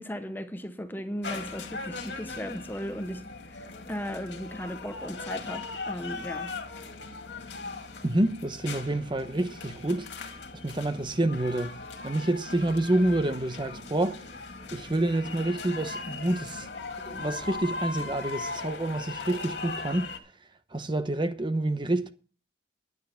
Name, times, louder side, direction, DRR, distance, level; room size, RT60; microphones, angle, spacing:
voice 1, 0.0-6.5, equal, 10° left, 0.8 m, -37 dB
sound 1, 1.2-20.2, left 3 dB, 80° left, 2.1 m, -39 dB
voice 2, 8.0-10.3 10.6-11.8 12.0-14.2 14.7-16.7 17.1-20.1 20.7-22.1, right 1 dB, 25° right, 0.9 m, -28 dB
10.5 x 10.0 x 5.8 m
head